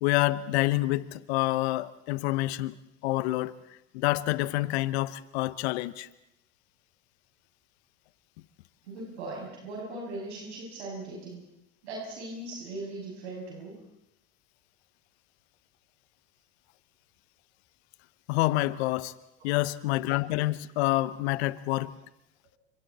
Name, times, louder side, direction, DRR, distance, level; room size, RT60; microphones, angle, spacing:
voice 1, 0.0-2.8 3.0-3.5 3.9-6.1 18.3-19.1 19.4-21.9, left 18 dB, 75° left, 1.2 m, -27 dB
voice 2, 8.8-11.4 11.8-13.8 19.4-19.6, right 2 dB, 85° right, 7.4 m, -39 dB
30.0 x 25.5 x 4.3 m
hypercardioid pair, 90°, 33 cm